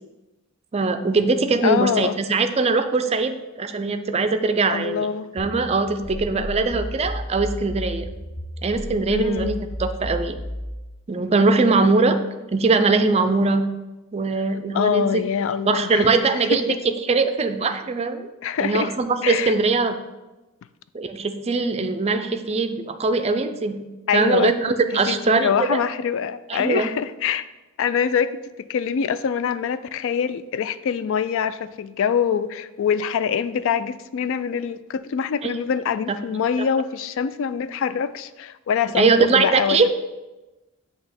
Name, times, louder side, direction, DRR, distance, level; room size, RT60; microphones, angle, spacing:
voice 1, 0.7-5.1 5.3-8.1 8.6-9.5 9.8-10.4 11.1-12.2 12.5-13.6 14.1-15.2 15.7-18.2 18.6-20.0 20.9-23.8 24.1-25.8 26.5-26.9 35.4-35.5 38.9-39.9, right 3 dB, 30° right, 0.4 m, -21 dB
voice 2, 1.6-2.1 4.7-5.3 6.3-6.5 9.1-9.6 14.7-16.6 18.4-18.9 19.2-19.5 24.1-24.5 25.1-27.5 27.8-28.4 28.7-39.9, left 7 dB, 60° left, 0.3 m, -24 dB
sound 1, 5.4-10.8, equal, 35° left, 0.7 m, -33 dB
7.8 x 2.9 x 5.8 m
head